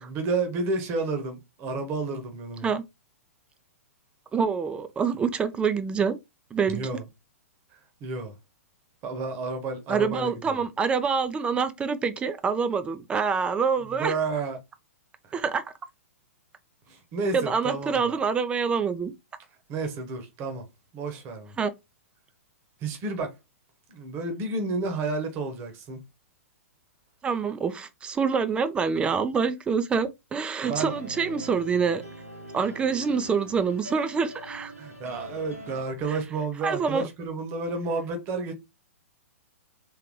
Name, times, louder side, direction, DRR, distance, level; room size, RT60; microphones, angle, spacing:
voice 1, 0.0-2.7 6.7-7.0 8.0-8.3 9.0-10.6 13.8-14.6 15.3-15.4 16.9-18.2 19.7-20.7 20.9-21.5 22.8-23.3 23.9-26.0 30.6-31.0 34.8-38.5, right 3 dB, 30° right, 1.2 m, -31 dB
voice 2, 4.3-6.2 6.5-6.8 9.9-14.1 15.3-15.6 17.3-19.1 21.6-21.7 27.2-32.0 32.5-34.7 36.1-36.2 36.6-37.1, right 5 dB, 15° right, 0.5 m, -26 dB
sound 1, 30.6-35.9, right 1 dB, 85° right, 2.0 m, -43 dB
3.9 x 3.2 x 3.2 m
figure-of-eight pair, 110°, 8 cm